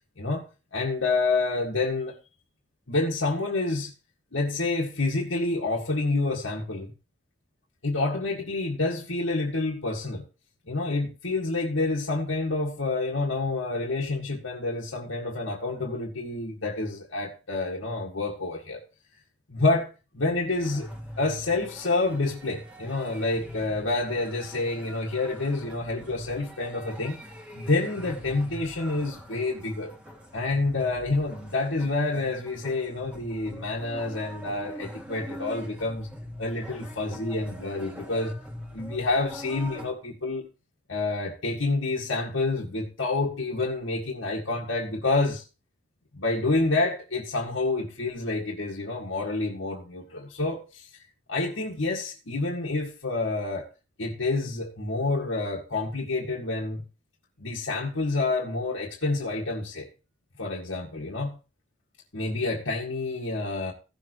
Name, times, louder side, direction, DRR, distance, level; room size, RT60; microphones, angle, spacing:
voice 1, 0.7-2.2 2.9-3.9 4.3-6.9 7.8-10.2 10.7-18.8 19.5-27.2 27.5-29.9 30.3-36.1 36.4-38.3 38.7-40.4 40.9-45.4 46.1-50.9 51.3-53.7 54.0-56.8 57.4-59.9 60.4-61.4 62.1-63.7, left 3 dB, 75° left, 1.9 m, -28 dB
sound 1, 20.6-39.9, equal, 5° right, 1.5 m, -43 dB
16.5 x 6.9 x 3.1 m
head